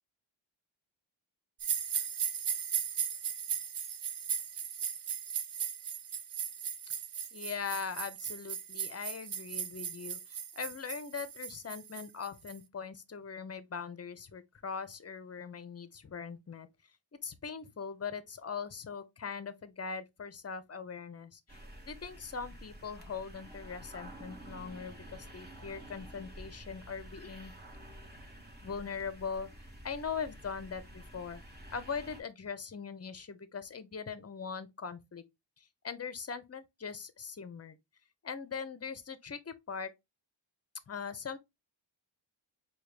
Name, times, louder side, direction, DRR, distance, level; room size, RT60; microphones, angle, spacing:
sound 1, 1.6-12.6, right 8 dB, 60° right, 0.6 m, -37 dB
voice 1, 7.3-16.7 17.2-21.6 21.8-27.5 28.6-29.5 29.8-31.4 31.7-35.2 35.6-37.8 38.2-39.9 40.9-41.4, left 6 dB, 30° left, 0.6 m, -41 dB
sound 2, 21.5-32.2, right 1 dB, 20° right, 1.0 m, -50 dB
4.6 x 2.3 x 3.2 m
wide cardioid pair, 65°, 47 cm